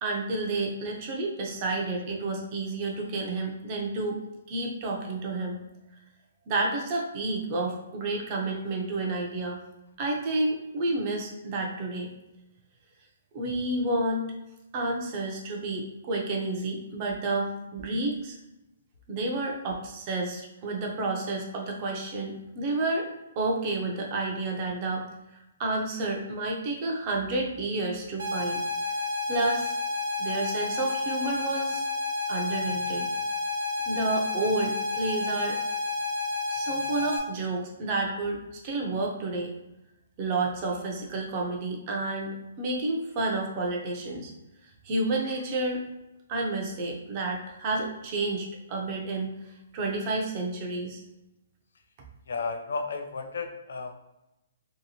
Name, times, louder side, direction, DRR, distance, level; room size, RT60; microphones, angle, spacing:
voice 1, 0.0-4.2 4.5-5.6 6.5-9.6 10.0-12.1 13.3-14.3 14.7-18.4 19.1-23.1 23.4-25.0 25.6-28.6 28.9-29.0 29.3-29.7 30.2-31.8 32.3-33.1 33.9-35.6 36.5-39.5 40.2-44.3 44.6-45.8 46.3-51.0, right 2 dB, 25° right, 0 dB, 0.5 m, -30 dB
sound 1, 28.2-37.2, left 3 dB, 60° right, 0.8 m, -30 dB
voice 2, 52.3-53.9, left 4 dB, 65° left, 6 dB, 0.4 m, -33 dB
2.9 x 2.7 x 2.8 m, 0.93 s
hypercardioid pair, 175°, 0 cm